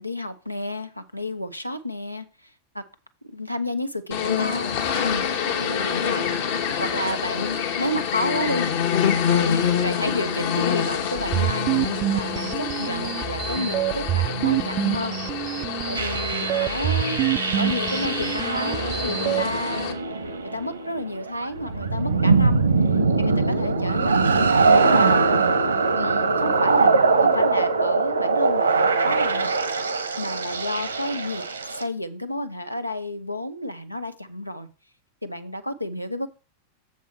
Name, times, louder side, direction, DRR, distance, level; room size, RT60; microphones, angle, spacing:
voice 1, 0.0-2.2 2.7-2.8 3.2-4.7 5.0-5.3 5.6-6.2 6.8-15.2 15.9-17.2 17.6-20.0 20.4-25.3 25.9-29.5 29.9-34.7 35.2-36.3, left 1 dB, 90° left, 10 dB, 0.7 m, -31 dB
sound 1, 4.1-19.9, left 8 dB, 55° left, 1.1 m, -27 dB
sound 2, 11.2-19.4, right 14 dB, 40° right, 0.4 m, -27 dB
sound 3, 16.0-31.8, right 4 dB, 75° right, 1.0 m, -22 dB
7.3 x 5.8 x 4.3 m, 0.34 s
figure-of-eight pair, 90°, 0 cm